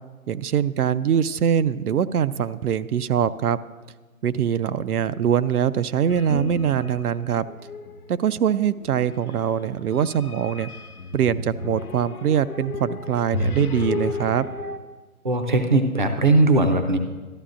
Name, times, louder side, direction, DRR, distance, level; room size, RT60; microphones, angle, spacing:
voice 1, 0.3-3.6 4.2-7.5 8.1-10.7 11.1-14.5, right 9 dB, 90° right, 14 dB, 0.5 m, -23 dB
sound 1, 6.1-7.1 7.5-8.0 8.8-14.8, left 3 dB, 85° left, 0.9 m, -32 dB
voice 2, 15.2-17.0, right 2 dB, 35° right, 7 dB, 0.4 m, -19 dB
13.0 x 10.0 x 2.5 m, 1.3 s
hypercardioid pair, 160°, 44 cm